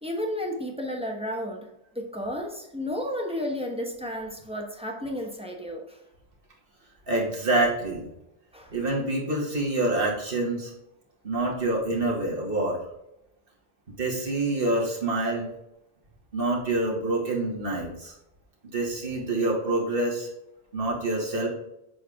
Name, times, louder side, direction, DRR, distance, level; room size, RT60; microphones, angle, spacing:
voice 1, 0.0-1.7 1.9-6.0 8.5-8.7, left 1 dB, 5° right, 1 dB, 1.1 m, -32 dB
voice 2, 7.1-8.1 8.7-10.7 11.2-12.8 14.0-15.5 16.3-18.1 18.7-20.3 20.7-21.5, right 2 dB, 50° right, -3 dB, 2.3 m, -26 dB
7.5 x 4.7 x 3.6 m, 0.86 s
omnidirectional pair, 1.3 m